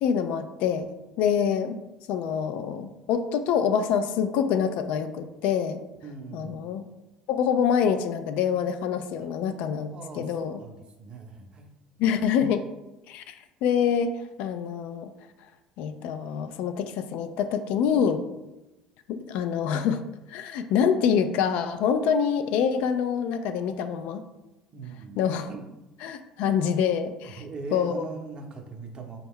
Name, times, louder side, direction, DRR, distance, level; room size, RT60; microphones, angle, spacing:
voice 1, 0.0-0.9 1.2-1.8 2.1-5.8 6.3-6.8 7.3-9.9 10.2-10.5 12.0-12.6 13.1-13.3 13.6-14.1 14.4-15.1 15.8-18.2 19.1-20.0 20.3-24.2 25.2-25.5 26.0-27.4 27.7-28.0, left 7 dB, 70° left, 9 dB, 0.3 m, -25 dB
voice 2, 6.0-6.6 9.2-9.3 9.9-11.7 24.7-25.7 27.2-29.2, right 4 dB, 40° right, 3 dB, 0.7 m, -40 dB
4.1 x 2.3 x 3.6 m, 1.0 s
hypercardioid pair, 75°, 2 cm